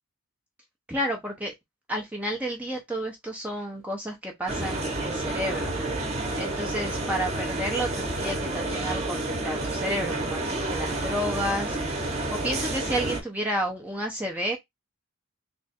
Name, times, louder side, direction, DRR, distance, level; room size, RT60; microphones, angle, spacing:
voice 1, 0.9-1.5 1.9-5.7 6.4-9.2 9.4-11.8 12.3-14.6, equal, 5° right, 0.6 m, -31 dB
sound 1, 4.5-13.2, right 2 dB, 30° right, 1.0 m, -30 dB
3.5 x 2.4 x 4.2 m
head